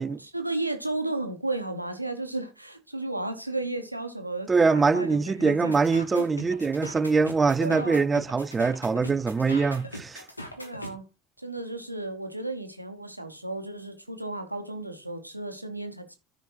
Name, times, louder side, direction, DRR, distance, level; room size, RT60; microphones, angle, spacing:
voice 1, 0.0-6.3 7.6-8.0 10.6-11.0 11.4-16.2, right 2 dB, 90° right, 0.9 m, -34 dB
voice 2, 4.5-10.2, right 4 dB, 20° right, 0.3 m, -23 dB
sound 1, 5.7-10.9, equal, 90° left, 1.1 m, -40 dB
13.5 x 5.0 x 2.9 m
figure-of-eight pair, 65°, 0 cm